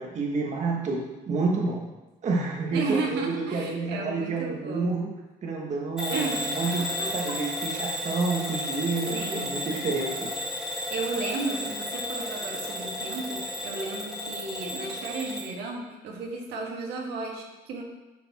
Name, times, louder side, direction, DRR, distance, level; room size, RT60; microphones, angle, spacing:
voice 1, 0.0-1.9 2.2-5.1 5.4-6.9 7.1-10.3, right 3 dB, 45° right, -1 dB, 1.2 m, -29 dB
voice 2, 2.7-5.0 6.1-7.4 7.7-7.8 9.1-9.5 10.9-17.8, right 3 dB, 80° right, 0 dB, 1.6 m, -34 dB
Bell / Alarm, 6.0-15.5, left 1 dB, 5° right, 1.7 m, -33 dB
10.5 x 4.1 x 4.1 m, 1.1 s
cardioid pair, 110°, 17 cm